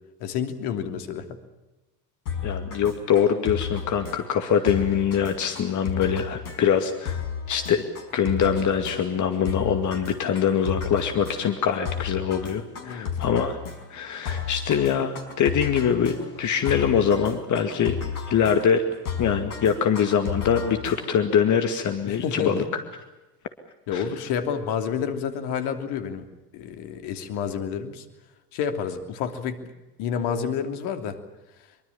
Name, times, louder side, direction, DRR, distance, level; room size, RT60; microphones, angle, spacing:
voice 1, 0.2-1.4 12.8-13.1 22.1-22.7 23.9-26.3 26.5-28.0 28.5-29.6 30.0-31.2, left 7 dB, 55° left, 7 dB, 3.0 m, -29 dB
sound 1, 2.3-21.4, left 7 dB, 70° left, 5.1 m, -33 dB
voice 2, 2.4-7.2 7.5-7.8 8.1-13.6 13.9-18.0 18.3-18.8 19.2-22.6 23.9-24.0, left 8 dB, 40° left, 7 dB, 2.3 m, -23 dB
24.5 x 24.0 x 7.3 m, 1.1 s
figure-of-eight pair, 65°, 46 cm